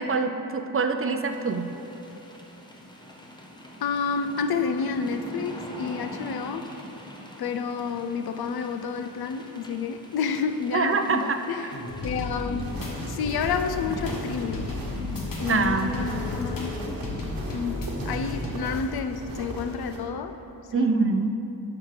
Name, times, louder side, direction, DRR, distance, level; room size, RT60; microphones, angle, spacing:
voice 1, 0.0-1.7 10.7-11.4 15.5-16.2 20.7-21.3, right 4 dB, 40° right, 6 dB, 0.4 m, -25 dB
sound 1, 1.3-16.9, equal, 10° left, 0.7 m, -45 dB
voice 2, 3.8-6.7 7.4-11.7 12.0-12.7 13.1-14.7 15.4-16.8 17.5-20.4 20.7-20.9, left 5 dB, 85° left, 9 dB, 0.5 m, -30 dB
sound 2, 11.7-18.5, left 2 dB, 65° left, 1.2 m, -33 dB
sound 3, 12.5-20.0, right 1 dB, 70° right, 1.1 m, -38 dB
11.0 x 6.1 x 3.3 m, 3.0 s
wide cardioid pair, 165°, 37 cm